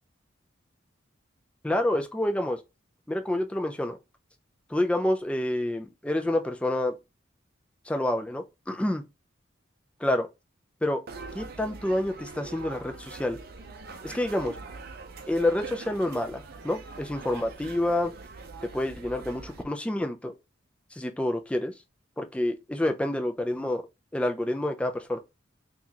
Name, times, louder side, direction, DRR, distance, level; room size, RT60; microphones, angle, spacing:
voice 1, 1.6-2.6 3.1-4.0 4.7-6.9 7.9-9.0 10.0-10.3 10.8-11.0 11.3-13.4 14.0-14.6 15.3-18.1 18.7-20.3 21.0-21.7 22.2-23.8 24.1-25.2, left 1 dB, 5° left, 0.4 m, -28 dB
sound 1, 11.1-19.6, right 4 dB, 55° right, 0.6 m, -43 dB
4.0 x 2.4 x 2.9 m
head